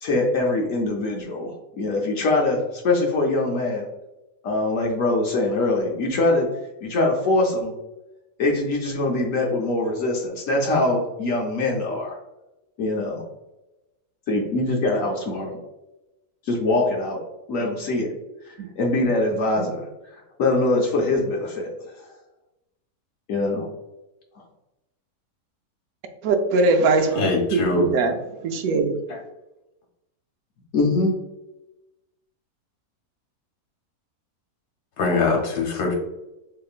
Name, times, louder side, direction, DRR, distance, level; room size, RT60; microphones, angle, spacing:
voice 1, 0.0-3.9 4.4-6.5 6.8-7.7 8.4-12.2 12.8-13.2 14.3-15.6 16.4-17.2 17.5-18.1 18.5-19.9 20.4-21.7 23.3-23.7 30.7-31.1, left 2 dB, 65° left, 0 dB, 1.0 m, -23 dB
voice 2, 26.2-28.1 28.4-29.0, right 3 dB, 75° right, 5 dB, 1.0 m, -21 dB
voice 3, 27.1-27.9 29.1-29.2 35.0-35.9, left 3 dB, 85° left, 0 dB, 1.4 m, -22 dB
4.2 x 2.9 x 2.4 m, 0.97 s
omnidirectional pair, 1.6 m